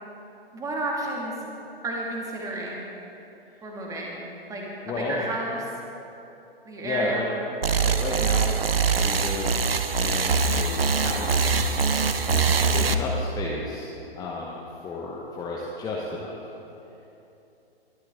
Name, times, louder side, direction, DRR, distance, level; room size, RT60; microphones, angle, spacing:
voice 1, 0.5-1.3 1.8-2.9 3.6-4.2 4.5-5.7 6.7-7.3, right 2 dB, 10° right, -2 dB, 2.3 m, -31 dB
voice 2, 4.9-5.2 6.8-7.2 7.8-8.6 9.0-9.7 10.0-11.7 12.2-13.9 14.2-16.4, left 3 dB, 15° left, -3 dB, 1.1 m, -32 dB
sound 1, 7.6-12.9, right 5 dB, 70° right, 0.9 m, -23 dB
21.5 x 12.0 x 3.7 m, 2.9 s
figure-of-eight pair, 120°, 30 cm